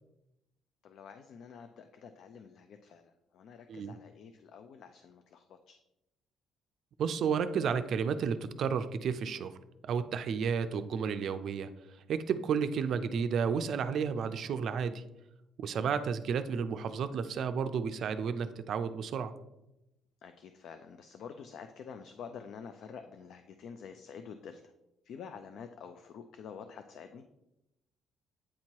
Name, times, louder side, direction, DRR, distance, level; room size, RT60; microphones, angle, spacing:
voice 1, 0.8-5.8 15.8-16.0 20.2-24.7 25.0-27.2, left 6 dB, 60° left, 8 dB, 0.4 m, -48 dB
voice 2, 7.0-9.5 9.8-11.7 12.1-15.0 15.6-19.3, right 6 dB, 55° right, 10 dB, 0.4 m, -32 dB
8.6 x 2.9 x 4.5 m, 0.91 s
cardioid pair, 130°, 0 cm